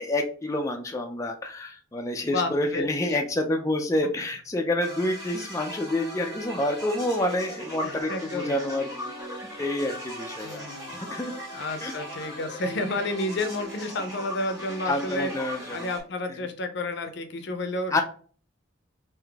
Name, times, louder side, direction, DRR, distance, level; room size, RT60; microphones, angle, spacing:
voice 1, 0.0-8.8 9.6-10.6 10.9-11.3 11.8-11.9 14.9-15.9 17.9-18.0, left 1 dB, 15° left, 3 dB, 0.4 m, -28 dB
voice 2, 2.2-3.2 7.8-8.6 10.4-10.9 11.5-18.0, left 2 dB, 60° left, 8 dB, 0.6 m, -31 dB
sound 1, 4.8-16.0, equal, 20° right, 1.7 m, -39 dB
3.8 x 2.6 x 3.4 m, 0.42 s
head